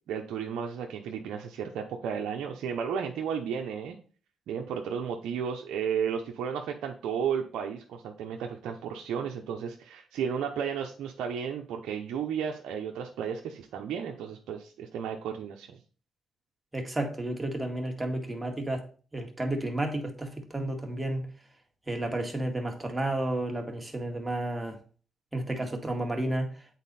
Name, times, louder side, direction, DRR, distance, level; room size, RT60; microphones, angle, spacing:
voice 1, 0.1-4.0 4.5-15.8, right 7 dB, 80° right, 0.7 m, -33 dB
voice 2, 16.7-18.9 19.1-21.3 21.9-24.8 25.3-26.5, right 1 dB, 15° right, 1.9 m, -31 dB
8.2 x 4.1 x 4.2 m
supercardioid pair, 65°, 0 cm